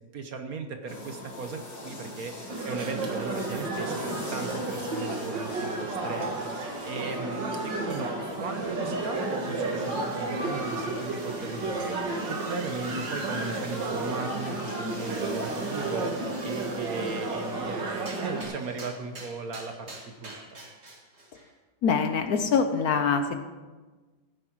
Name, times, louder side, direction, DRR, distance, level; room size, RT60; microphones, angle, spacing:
voice 1, 0.1-8.1 8.4-20.4, right 4 dB, 55° right, 6 dB, 1.3 m, -37 dB
sound 1, 0.9-17.6, left 1 dB, 80° left, 3.2 m, -41 dB
sound 2, 2.5-18.4, right 2 dB, 80° right, 2.3 m, -32 dB
sound 3, 8.4-21.5, right 2 dB, 35° right, 2.2 m, -47 dB
voice 2, 21.8-23.4, left 5 dB, 60° left, 8 dB, 1.1 m, -24 dB
15.5 x 9.6 x 4.6 m, 1.3 s
omnidirectional pair, 2.0 m